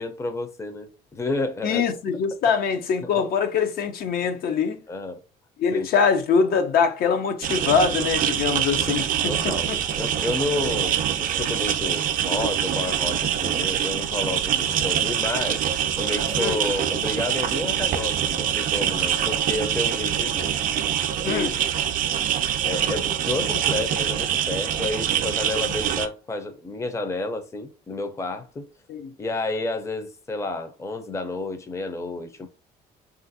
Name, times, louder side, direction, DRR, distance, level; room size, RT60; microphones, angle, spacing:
voice 1, 0.0-1.8 3.0-3.2 4.9-5.2 5.7-5.9 9.3-15.7 16.0-20.5 21.2-21.4 22.6-28.7 29.2-32.5, left 2 dB, 15° left, 0.5 m, -30 dB
voice 2, 1.6-4.8 5.6-9.8 16.4-16.6 21.2-21.5 28.9-29.1, left 6 dB, 65° left, 0.6 m, -23 dB
sound 1, 7.4-26.1, right 9 dB, 55° right, 0.4 m, -25 dB
3.3 x 2.4 x 2.6 m
cardioid pair, 110°, 17 cm